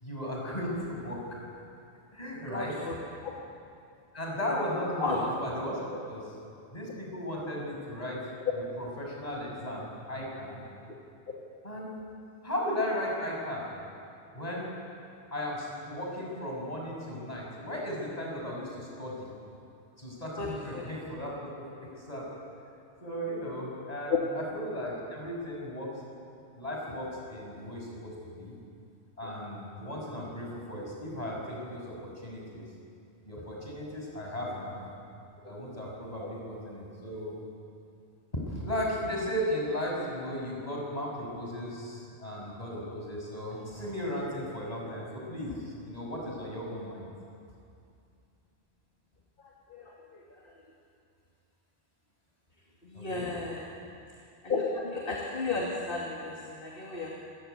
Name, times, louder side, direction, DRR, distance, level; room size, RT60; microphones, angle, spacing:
voice 1, 0.0-1.2 2.1-2.7 4.1-6.3 6.7-8.2 8.8-10.6 11.6-12.0 12.4-13.7 14.3-14.7 15.3-19.3 20.0-21.6 22.1-22.3 23.0-25.9 26.5-28.5 29.2-32.0 32.2-32.6 33.2-34.9 35.4-37.3 38.4-47.1 52.9-53.3, equal, 35° left, -2 dB, 6.6 m, -36 dB
voice 2, 2.5-3.0 3.2-3.3 5.0-5.2 20.4-20.5 20.7-20.8 24.1-24.2 36.2-36.3 49.7-49.9 52.9-53.6 54.4-57.1, left 4 dB, 50° left, -3 dB, 2.8 m, -32 dB
27.0 x 16.5 x 9.4 m, 2.5 s
omnidirectional pair, 1.2 m